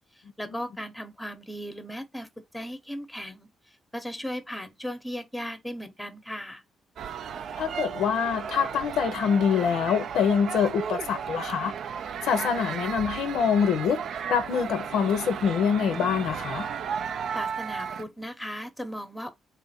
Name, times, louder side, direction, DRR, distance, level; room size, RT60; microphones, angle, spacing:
voice 1, 0.4-2.3 2.5-3.5 3.9-6.6 17.3-19.3, equal, 5° left, 0.7 m, -36 dB
sound 1, 7.0-18.0, right 7 dB, 65° right, 0.3 m, -34 dB
voice 2, 7.6-11.7 12.2-14.0 14.3-16.7, left 7 dB, 80° left, 0.6 m, -25 dB
3.6 x 2.5 x 4.2 m
cardioid pair, 90°, 0 cm